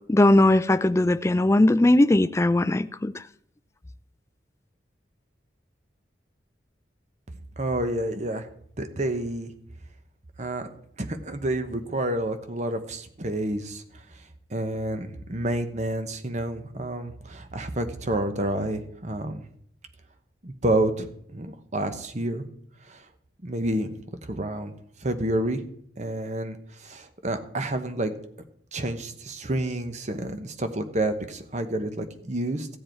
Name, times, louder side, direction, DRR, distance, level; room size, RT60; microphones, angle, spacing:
voice 1, 0.0-3.1, left 1 dB, 15° left, 0.3 m, -19 dB
voice 2, 7.6-8.5 8.8-9.5 10.4-14.0 14.5-19.4 20.4-22.4 22.9-23.0 23.4-23.9 24.2-24.7 25.0-25.6 26.0-28.1 28.7-32.7, right 1 dB, 40° right, 1.1 m, -29 dB
15.5 x 7.7 x 4.5 m
head